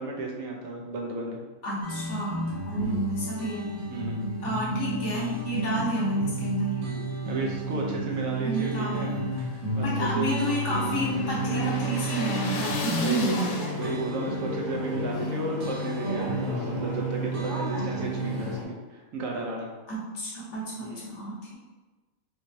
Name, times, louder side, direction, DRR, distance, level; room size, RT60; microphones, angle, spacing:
voice 1, 0.0-1.4 2.8-3.0 3.9-4.3 6.8-9.1 9.7-10.3 13.0-13.4 13.7-19.7 20.8-21.1, right 2 dB, 75° right, -1 dB, 1.0 m, -33 dB
voice 2, 1.6-2.4 2.7-3.7 4.4-6.8 8.4-9.1 9.8-13.5 19.9-21.5, right 1 dB, 60° left, -5 dB, 1.2 m, -30 dB
sound 1, 1.8-18.6, right 1 dB, 90° right, 1.3 m, -32 dB
sound 2, 8.7-14.1, left 3 dB, 80° left, 1.0 m, -37 dB
sound 3, 10.3-18.6, equal, 55° right, 1.4 m, -37 dB
3.3 x 3.0 x 2.6 m, 1.2 s
omnidirectional pair, 1.5 m